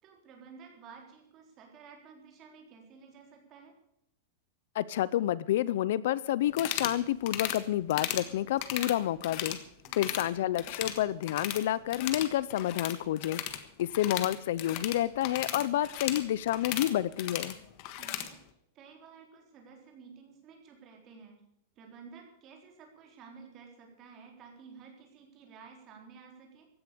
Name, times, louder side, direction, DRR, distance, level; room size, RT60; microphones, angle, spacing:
voice 1, 0.0-3.7 9.8-10.2 17.9-18.4 18.7-21.4 21.8-26.7, right 5 dB, 25° right, 2 dB, 4.0 m, -53 dB
voice 2, 4.7-9.6 9.9-13.4 13.8-17.6, left 13 dB, 55° left, 19 dB, 0.6 m, -29 dB
sound 1, 6.5-7.0 7.3-7.6 7.9-8.3 8.6-9.6 9.8-10.3 10.5-11.6 11.9-18.3, left 12 dB, 35° left, 1.4 m, -36 dB
16.0 x 10.5 x 6.8 m, 0.78 s
supercardioid pair, 175°, 0 cm